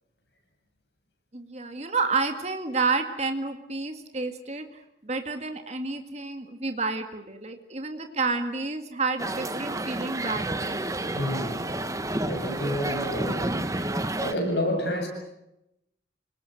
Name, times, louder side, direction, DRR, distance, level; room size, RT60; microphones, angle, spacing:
voice 1, 1.3-10.8, right 4 dB, 35° right, 6 dB, 2.0 m, -30 dB
sound 1, 9.2-14.3, right 1 dB, 20° right, 1.3 m, -30 dB
voice 2, 11.2-11.6 12.3-13.5 14.2-15.1, left 1 dB, 75° left, 3 dB, 7.8 m, -29 dB
28.5 x 19.0 x 9.1 m, 0.84 s
head